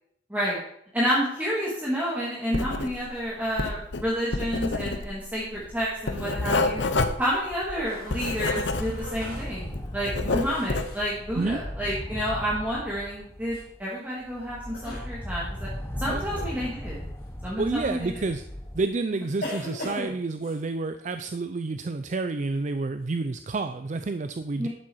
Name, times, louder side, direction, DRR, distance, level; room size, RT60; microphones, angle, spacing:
voice 1, 0.9-6.8 7.2-15.7 16.0-17.0 17.4-18.1 24.6-24.7, equal, 10° right, -6 dB, 2.2 m, -29 dB
Writing, 2.5-3.2 3.4-9.3 9.6-11.0, left 3 dB, 90° left, 1.0 m, -28 dB
sound 1, 6.0-6.7 7.1-7.2 8.0-13.8 14.2-18.9, equal, 15° left, 1.0 m, -38 dB
sound 2, 7.8-11.1 13.5-13.7 14.6-15.1 16.3-16.7 17.6-17.8 19.4-20.6, left 2 dB, 60° left, 4.8 m, -39 dB
voice 2, 17.6-18.4 18.7-24.7, right 3 dB, 45° right, 9 dB, 0.5 m, -29 dB
11.0 x 7.5 x 4.6 m, 0.72 s
head